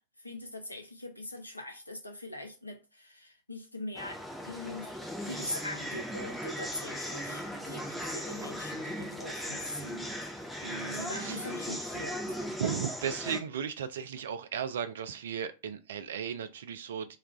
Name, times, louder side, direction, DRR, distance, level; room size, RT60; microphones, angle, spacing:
voice 1, 0.2-4.9 5.2-10.1 10.8-12.4, left 1 dB, 85° left, 0.5 m, -42 dB
sound 1, 4.0-13.4, equal, ahead, 0.5 m, -38 dB
voice 2, 10.6-11.5 12.6-17.2, right 8 dB, 60° right, 0.3 m, -36 dB
2.3 x 2.2 x 2.9 m
figure-of-eight pair, 90°, 0 cm